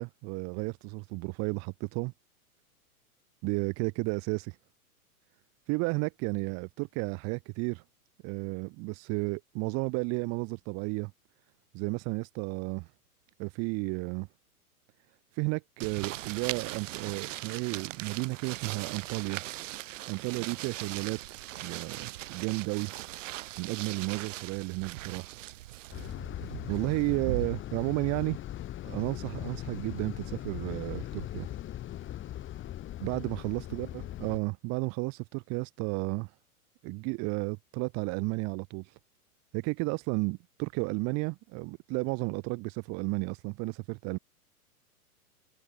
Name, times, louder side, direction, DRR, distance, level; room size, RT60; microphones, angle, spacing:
voice 1, 0.0-2.1 3.4-4.6 5.7-7.8 8.2-11.1 11.7-12.9 13.4-14.3 15.3-19.4 20.1-21.2 21.6-22.9 23.6-25.3 26.7-28.4 28.8-31.5 33.0-36.3 36.8-39.0 39.5-44.2, right 29 dB, 35° right, 1.3 m, -33 dB
sound 1, 15.8-27.5, right 15 dB, 55° right, 1.9 m, -40 dB
sound 2, 25.9-34.4, left 12 dB, 25° left, 2.9 m, -39 dB
hypercardioid pair, 110°, 45 cm